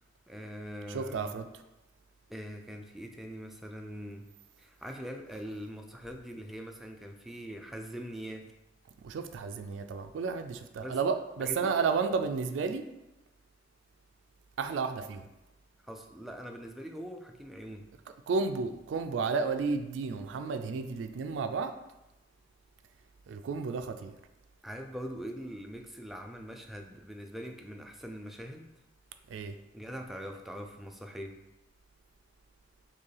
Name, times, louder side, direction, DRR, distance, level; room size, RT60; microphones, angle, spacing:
voice 1, 0.3-1.3 2.3-4.3 4.6-8.5 10.8-11.0 11.4-11.7 15.9-17.9 24.6-28.7 29.7-31.4, equal, ahead, 3 dB, 0.3 m, -42 dB
voice 2, 0.9-1.5 9.0-12.9 14.6-15.3 18.3-21.7 23.3-24.1 29.3-29.6, right 5 dB, 85° right, 8 dB, 0.3 m, -32 dB
4.4 x 3.2 x 3.3 m, 0.95 s
head